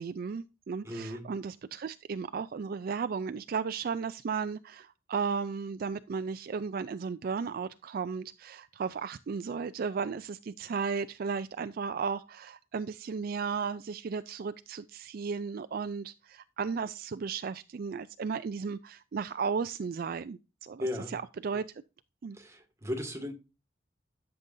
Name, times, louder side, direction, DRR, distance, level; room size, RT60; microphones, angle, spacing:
voice 1, 0.0-21.7 22.2-22.4, right 5 dB, 50° right, 0.4 m, -35 dB
voice 2, 0.8-1.3 20.8-21.1 22.4-23.3, left 1 dB, 15° right, 1.8 m, -36 dB
12.0 x 6.8 x 2.6 m
head